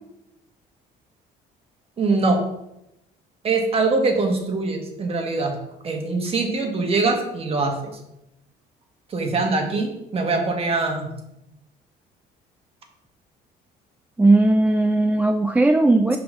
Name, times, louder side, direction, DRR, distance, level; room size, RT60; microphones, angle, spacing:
voice 1, 2.0-2.4 3.4-5.6 5.8-7.9 9.1-11.1, right 3 dB, 35° right, 3 dB, 1.3 m, -23 dB
voice 2, 14.2-16.2, right 2 dB, 10° right, 6 dB, 0.3 m, -17 dB
5.6 x 3.7 x 5.4 m, 0.84 s
cardioid pair, 110°, 17 cm